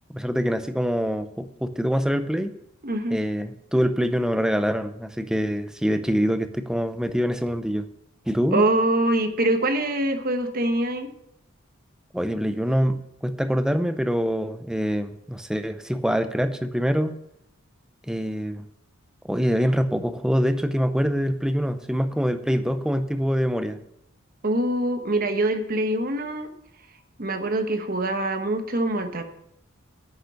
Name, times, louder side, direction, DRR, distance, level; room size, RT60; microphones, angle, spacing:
voice 1, 0.1-2.5 3.1-7.9 8.3-8.6 12.1-17.2 18.1-18.7 19.3-23.8, equal, 5° right, 9 dB, 0.6 m, -25 dB
voice 2, 2.8-3.2 8.5-11.1 24.4-26.5 27.2-29.2, right 1 dB, 45° right, 7 dB, 1.1 m, -24 dB
9.7 x 6.6 x 6.9 m, 0.77 s
head